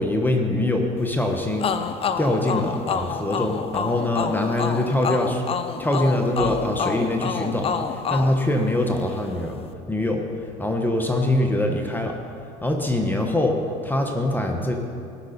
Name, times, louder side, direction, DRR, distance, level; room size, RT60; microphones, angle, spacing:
voice 1, 0.0-1.7 2.2-5.4 5.8-9.5 9.9-10.2 10.6-12.2 12.6-13.6 13.8-14.8, left 1 dB, 10° left, 3 dB, 1.3 m, -23 dB
sound 1, 1.6-9.2, left 6 dB, 35° left, 0.7 m, -28 dB
17.5 x 6.5 x 4.4 m, 2.6 s
supercardioid pair, 85°, 17 cm